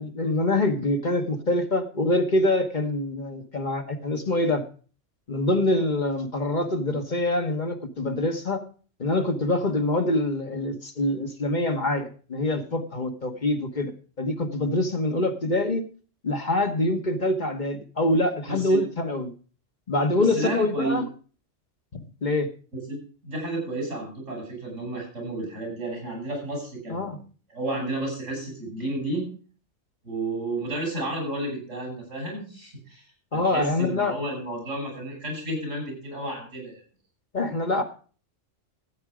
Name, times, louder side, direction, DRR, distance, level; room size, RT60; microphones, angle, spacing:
voice 1, 0.0-4.6 5.3-8.6 9.0-13.9 14.2-15.8 16.2-19.3 19.9-21.0 21.9-22.5 26.9-27.2 33.3-34.2 37.3-37.8, left 2 dB, 40° left, 5 dB, 1.3 m, -25 dB
voice 2, 18.5-18.8 20.2-21.0 22.9-27.2 27.5-29.3 30.0-33.0 33.3-36.8, right 1 dB, 90° right, 0 dB, 7.2 m, -32 dB
13.5 x 8.9 x 4.9 m, 0.39 s
omnidirectional pair, 1.2 m